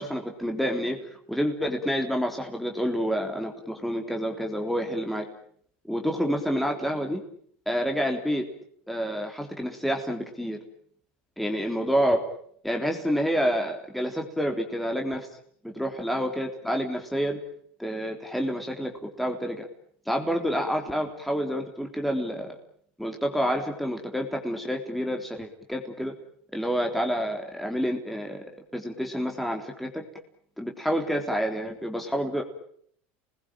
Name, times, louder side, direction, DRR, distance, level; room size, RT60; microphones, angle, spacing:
voice 1, 0.0-5.3 5.9-7.2 7.7-8.5 8.9-10.6 11.4-12.2 12.6-15.3 15.6-17.4 17.8-19.7 20.1-22.5 23.0-26.1 26.5-30.0 30.6-32.4, equal, ahead, 2 dB, 3.5 m, -28 dB
28.5 x 20.5 x 9.0 m, 0.64 s
supercardioid pair, 120°, 6 cm